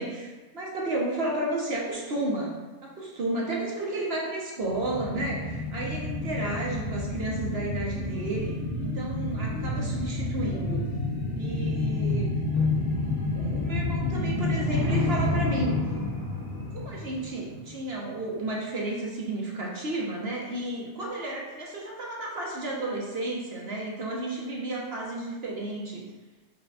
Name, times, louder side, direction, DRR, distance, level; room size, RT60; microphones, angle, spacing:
voice 1, 0.0-2.6 2.8-10.9 11.4-12.3 13.3-15.9 16.7-26.0, right 2 dB, 50° right, -3 dB, 0.8 m, -32 dB
sound 1, 4.6-17.9 18.2-18.3, left 2 dB, 20° left, 0.9 m, -29 dB
5.7 x 2.2 x 4.0 m, 1.3 s
omnidirectional pair, 1.6 m